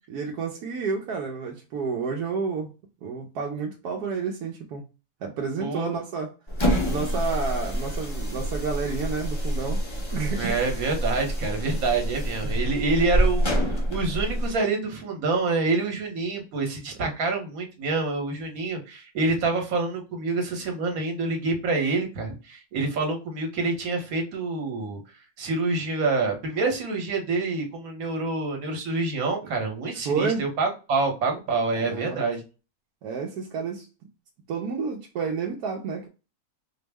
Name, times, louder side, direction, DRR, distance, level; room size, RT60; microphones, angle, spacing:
voice 1, 0.1-2.7 3.0-4.8 5.2-6.3 6.9-9.8 10.1-10.6 12.4-12.5 17.0-17.1 30.0-30.4 31.7-32.2 33.0-33.9 34.5-36.1, right 5 dB, 80° right, 1 dB, 1.2 m, -30 dB
voice 2, 5.6-6.0 10.4-25.0 25.4-32.4, right 3 dB, 65° right, 3 dB, 1.4 m, -27 dB
sound 1, 6.5-14.6, equal, 25° left, 0.6 m, -27 dB
4.4 x 2.1 x 3.4 m, 0.31 s
omnidirectional pair, 1.6 m